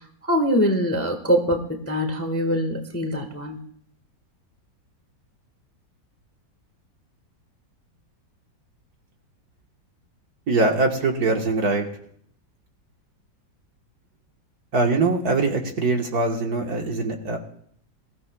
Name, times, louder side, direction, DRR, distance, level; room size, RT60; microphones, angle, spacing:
voice 1, 0.2-3.6, equal, 10° left, 4 dB, 1.0 m, -23 dB
voice 2, 10.5-11.9 14.7-17.4, right 3 dB, 55° right, 2 dB, 1.8 m, -22 dB
22.0 x 15.0 x 2.3 m, 0.62 s
omnidirectional pair, 2.1 m